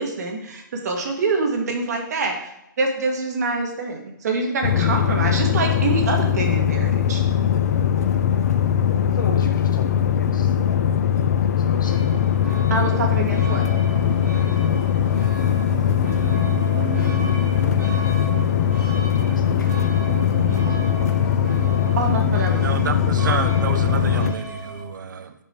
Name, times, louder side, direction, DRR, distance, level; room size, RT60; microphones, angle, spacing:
voice 1, 0.0-2.5 2.8-7.2 12.7-13.6 22.0-22.9, right 3 dB, 50° right, 2 dB, 1.7 m, -25 dB
sound 1, 4.6-24.3, left 9 dB, 50° left, 0.5 m, -20 dB
voice 2, 9.0-12.3 19.3-20.8, left 4 dB, 70° left, 5 dB, 1.4 m, -37 dB
sound 2, 11.8-24.8, right 4 dB, 10° right, 1.1 m, -35 dB
voice 3, 22.5-25.3, right 6 dB, 65° right, 9 dB, 0.7 m, -29 dB
6.9 x 5.4 x 4.6 m, 0.81 s
hypercardioid pair, 165°, 11 cm